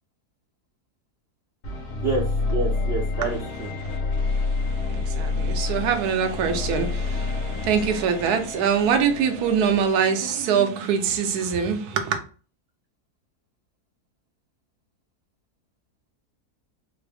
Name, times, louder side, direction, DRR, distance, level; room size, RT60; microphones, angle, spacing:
sound 1, 1.6-10.7, left 3 dB, 80° left, 1.7 m, -28 dB
voice 1, 1.9-3.7, right 3 dB, 55° right, 0.7 m, -28 dB
voice 2, 4.9-12.2, right 7 dB, 75° right, 1.1 m, -23 dB
3.8 x 2.0 x 3.3 m
omnidirectional pair, 1.7 m